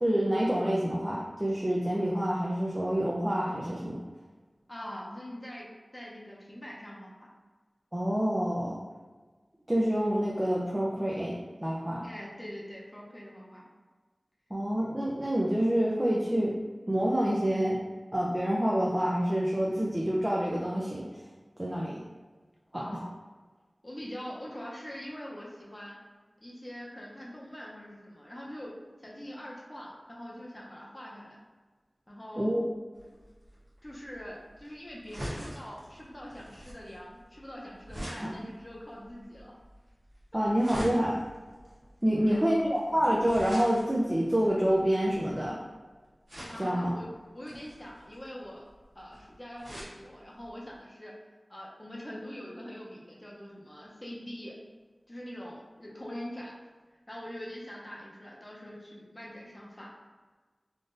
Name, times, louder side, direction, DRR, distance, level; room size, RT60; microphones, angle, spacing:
voice 1, 0.0-4.0 7.9-8.8 9.7-12.0 14.5-16.6 16.9-17.8 18.1-21.0 21.6-21.9 22.7-22.8 32.4-32.6 38.2-38.3 40.3-41.2 42.0-45.6 46.6-46.9, equal, 20° right, -4 dB, 0.5 m, -27 dB
voice 2, 4.7-5.7 5.9-7.3 12.0-13.7 22.7-23.1 23.8-26.0 26.4-28.7 29.0-31.4 32.1-32.5 33.8-39.5 40.3-40.4 42.1-42.7 46.5-48.7 48.9-51.1 51.5-54.6 55.1-56.5 57.1-59.9, equal, 25° left, -4 dB, 0.7 m, -43 dB
sound 1, 33.0-45.6 46.3-46.9 47.4-50.0 50.4-50.5 50.8-50.9, equal, 65° right, 1.4 m, -44 dB
3.6 x 2.5 x 2.6 m, 1.4 s
wide cardioid pair, 50°, 0 cm